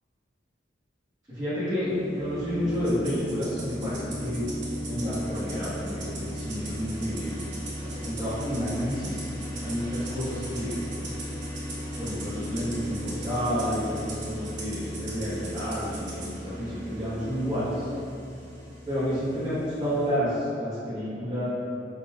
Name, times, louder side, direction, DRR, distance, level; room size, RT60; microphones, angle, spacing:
voice 1, 1.3-4.5 4.9-7.3 7.8-9.3 9.6-10.8 12.0-17.9 18.9-21.5, equal, 20° right, -17 dB, 1.2 m, -30 dB
sound 1, 1.8-20.1, left 1 dB, 15° left, 1.2 m, -37 dB
Rattle (instrument), 2.8-16.3, right 3 dB, 85° right, 0.9 m, -42 dB
4.4 x 4.0 x 2.3 m, 2.4 s
head